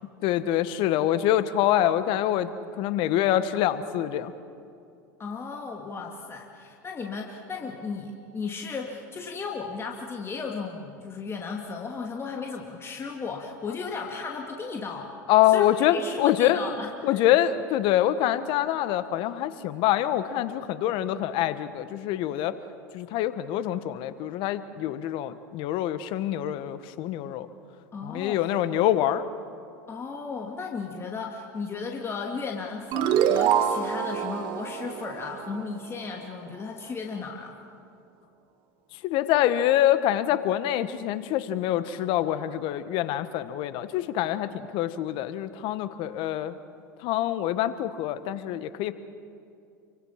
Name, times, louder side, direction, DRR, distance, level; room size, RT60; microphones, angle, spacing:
voice 1, 0.2-2.5 2.8-4.3 15.3-16.6 17.0-22.6 22.9-27.5 28.0-29.2 39.0-46.6 47.0-48.9, left 12 dB, 55° left, 13 dB, 1.4 m, -25 dB
voice 2, 5.2-15.1 15.5-17.2 27.9-28.5 29.9-37.5, left 4 dB, 25° left, 1 dB, 2.5 m, -35 dB
sound 1, 32.9-36.1, right 9 dB, 50° right, 1.6 m, -26 dB
28.5 x 24.5 x 5.9 m, 2.5 s
hypercardioid pair, 90°, 10 cm